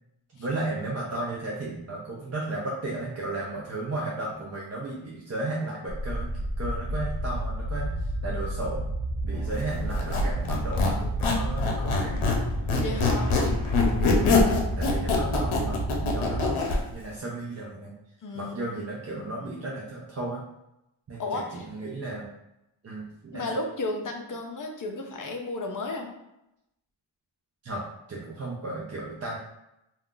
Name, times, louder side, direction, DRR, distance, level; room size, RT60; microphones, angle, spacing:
voice 1, 0.4-8.9 9.2-12.3 12.8-13.2 14.1-17.9 18.3-20.4 21.1-22.3 22.8-23.4 27.6-27.8 28.1-29.4, right 2 dB, 35° right, -5 dB, 0.5 m, -34 dB
sound 1, 5.9-16.5, right 1 dB, 75° right, 0.6 m, -31 dB
Squeak, 9.9-12.4 12.7-16.8, left 3 dB, 80° left, 0.7 m, -24 dB
voice 2, 12.8-13.3 18.2-18.8 19.1-19.5 21.2-21.6 23.3-26.1, left 2 dB, 45° left, 2 dB, 0.5 m, -33 dB
2.4 x 2.3 x 3.7 m, 0.87 s
wide cardioid pair, 130°, 48 cm